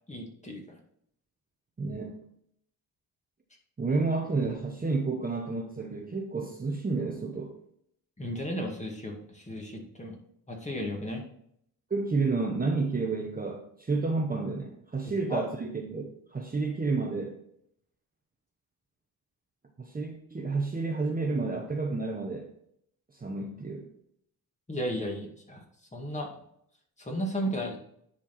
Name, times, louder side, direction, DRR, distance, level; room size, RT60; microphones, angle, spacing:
voice 1, 0.1-0.8 8.2-10.2 10.5-11.3 15.0-15.4 24.7-25.6 25.9-26.3 27.0-27.8, equal, 20° left, 1 dB, 2.0 m, -34 dB
voice 2, 1.8-2.1 3.8-7.6 11.9-17.4 19.8-22.5 23.2-23.9, right 3 dB, 25° right, 2 dB, 0.9 m, -30 dB
10.0 x 4.5 x 4.3 m, 0.71 s
cardioid pair, 110°, 36 cm